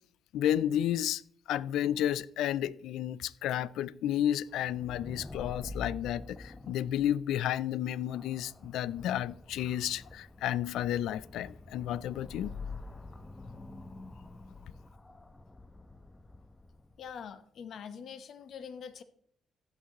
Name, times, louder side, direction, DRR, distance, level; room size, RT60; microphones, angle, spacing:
voice 1, 0.3-1.2 1.5-12.5, left 11 dB, 85° left, 0.3 m, -32 dB
sound 1, 4.5-17.1, left 3 dB, 20° left, 0.8 m, -47 dB
voice 2, 17.0-19.0, left 7 dB, 65° left, 0.9 m, -44 dB
15.0 x 8.7 x 3.0 m
cardioid pair, 90°, 0 cm